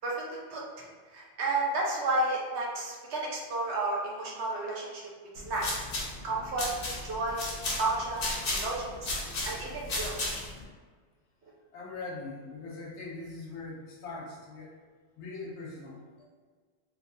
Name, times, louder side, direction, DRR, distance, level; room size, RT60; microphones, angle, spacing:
voice 1, 0.0-0.6 1.1-5.1 5.3-5.9 6.2-6.7 7.0-10.1, right 2 dB, 80° right, -3 dB, 1.0 m, -32 dB
sound 1, 5.4-10.6, left 2 dB, 60° left, 0.9 m, -34 dB
voice 2, 11.7-14.7 15.2-16.3, left 3 dB, 85° left, -3 dB, 1.1 m, -41 dB
3.3 x 2.8 x 2.7 m, 1.5 s
omnidirectional pair, 1.1 m